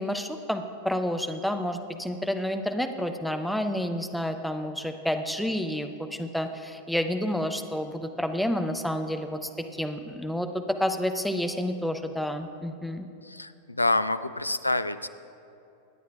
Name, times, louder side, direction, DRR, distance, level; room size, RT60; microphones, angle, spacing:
voice 1, 0.0-13.1, equal, ahead, 6 dB, 0.7 m, -30 dB
voice 2, 13.3-15.1, left 2 dB, 85° left, 13 dB, 0.3 m, -27 dB
22.5 x 9.3 x 2.4 m, 2.7 s
figure-of-eight pair, 90°, 0 cm